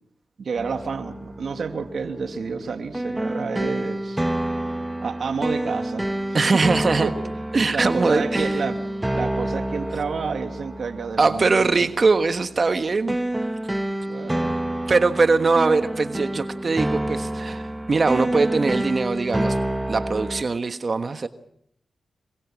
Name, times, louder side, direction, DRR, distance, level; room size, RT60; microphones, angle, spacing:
voice 1, 0.4-4.2 5.0-6.0 6.5-6.6 7.0-7.1 7.7-8.8 9.1-11.8 14.1-14.5, right 5 dB, 70° right, 6 dB, 2.5 m, -29 dB
sound 1, 0.6-20.4, right 1 dB, 15° right, 1.5 m, -28 dB
voice 2, 6.3-7.1 7.5-8.5 11.2-13.2 14.9-19.6 19.9-21.3, right 4 dB, 50° right, 9 dB, 1.4 m, -21 dB
26.5 x 23.0 x 6.3 m, 0.70 s
cardioid pair, 45°, 0 cm